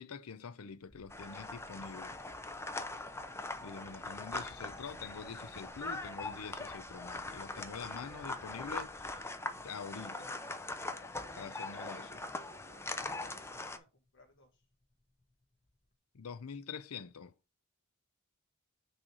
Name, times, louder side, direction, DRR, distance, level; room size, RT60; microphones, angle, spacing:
voice 1, 0.0-2.2 3.6-9.2 9.6-10.4 11.3-12.1 16.1-17.3, left 5 dB, 85° left, 0.6 m, -46 dB
sound 1, 0.8-9.6 10.7-10.8 13.0-13.1 13.3-15.9, left 1 dB, 35° left, 1.4 m, -61 dB
sound 2, 1.1-13.8, left 2 dB, 10° left, 0.5 m, -42 dB
voice 2, 10.6-12.1 12.5-14.7, left 2 dB, 60° left, 1.5 m, -64 dB
6.3 x 3.3 x 6.0 m
head